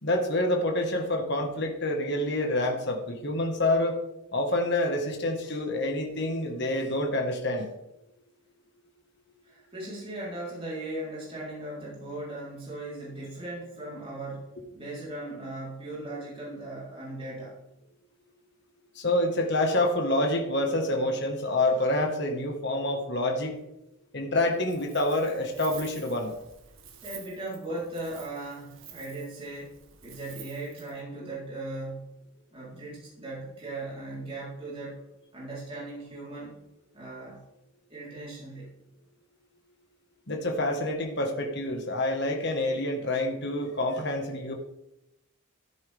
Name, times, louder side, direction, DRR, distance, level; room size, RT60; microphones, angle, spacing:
voice 1, 0.0-4.0 4.3-7.7 18.9-23.5 24.1-26.3 40.3-44.5, left 1 dB, 50° left, 3 dB, 1.7 m, -27 dB
voice 2, 9.4-14.5 14.7-17.5 27.0-29.7 30.0-32.0 32.5-35.0 35.3-36.6 36.9-37.4 37.9-38.7, right 2 dB, 25° right, -7 dB, 4.2 m, -38 dB
Wind, 24.5-31.0, right 9 dB, 70° right, 1.8 m, -49 dB
14.0 x 10.5 x 3.6 m, 0.89 s
head